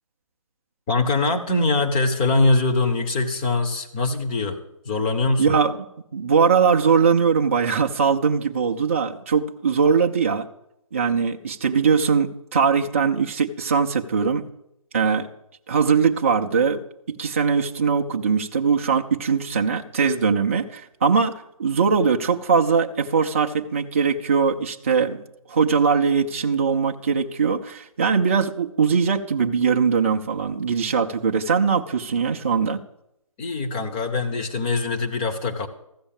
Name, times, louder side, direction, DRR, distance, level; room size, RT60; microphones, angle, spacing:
voice 1, 0.9-4.6 4.8-5.6 33.4-35.7, left 3 dB, 15° left, 4 dB, 0.7 m, -22 dB
voice 2, 5.4-5.7 6.1-10.5 10.9-14.5 14.9-15.3 15.7-21.3 21.6-25.2 25.5-32.8, right 6 dB, 25° right, 3 dB, 0.5 m, -21 dB
14.0 x 6.9 x 7.0 m, 0.80 s
figure-of-eight pair, 145°, 18 cm